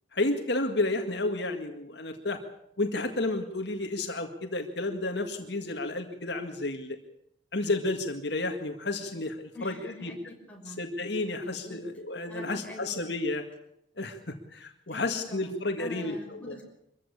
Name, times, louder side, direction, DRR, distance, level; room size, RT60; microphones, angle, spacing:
voice 1, 0.1-2.4 2.8-7.0 7.5-10.1 10.8-13.4 14.0-16.6, left 2 dB, 60° left, 5 dB, 2.0 m, -31 dB
voice 2, 9.5-10.8 11.4-11.8 12.2-13.0 14.9-16.6, left 1 dB, 5° left, -1 dB, 5.7 m, -45 dB
24.5 x 15.0 x 8.7 m, 0.77 s
head